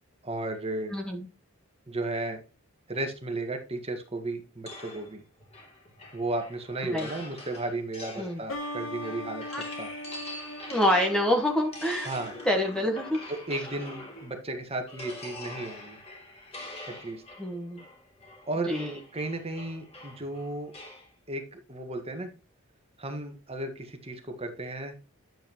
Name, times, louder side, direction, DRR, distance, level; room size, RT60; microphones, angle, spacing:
voice 1, 0.2-0.9 1.9-2.4 2.9-5.2 6.1-9.9 12.0-12.3 13.3-16.0 16.8-17.2 18.5-18.7 19.1-20.7 21.3-22.3 23.0-24.9, right 2 dB, 30° right, 5 dB, 1.7 m, -34 dB
voice 2, 0.9-1.3 6.9-7.1 8.2-8.4 9.5-9.6 10.7-12.1 12.4-13.2 17.4-17.8 18.7-19.0, left 1 dB, 5° left, 1 dB, 1.4 m, -26 dB
sound 1, 4.7-14.5 14.9-21.1, left 2 dB, 30° left, 2.9 m, -44 dB
sound 2, 8.5-13.9, left 1 dB, 70° left, 2.6 m, -41 dB
9.3 x 7.8 x 3.1 m, 0.31 s
head